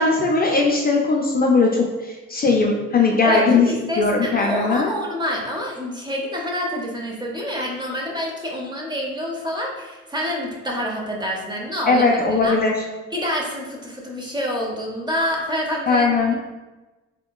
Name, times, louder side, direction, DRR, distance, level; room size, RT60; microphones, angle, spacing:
voice 1, 0.0-3.7 4.0-4.9 11.9-12.7 15.9-16.4, left 3 dB, 30° left, -1 dB, 0.4 m, -19 dB
voice 2, 3.2-12.1 12.4-12.6 13.1-16.1, equal, 15° right, -1 dB, 0.6 m, -27 dB
3.6 x 2.1 x 2.2 m, 1.1 s
cardioid pair, 90°, 30 cm